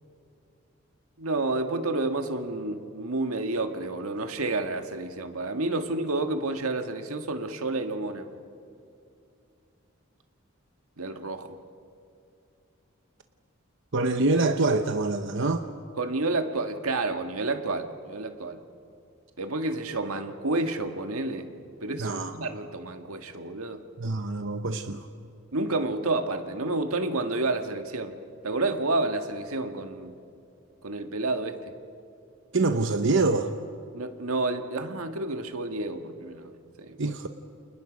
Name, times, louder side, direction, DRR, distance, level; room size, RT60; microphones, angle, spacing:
voice 1, 1.2-8.3 11.0-11.6 16.0-18.6 19.4-21.5 21.8-23.8 25.5-28.2 28.4-30.2 30.8-31.7 33.9-36.5 36.8-37.1, right 2 dB, 90° right, 6 dB, 1.7 m, -30 dB
voice 2, 13.9-15.6 22.0-22.3 24.0-25.1 32.5-33.5 37.0-37.3, right 3 dB, 60° right, 7 dB, 0.9 m, -25 dB
29.5 x 28.0 x 5.2 m, 2.6 s
head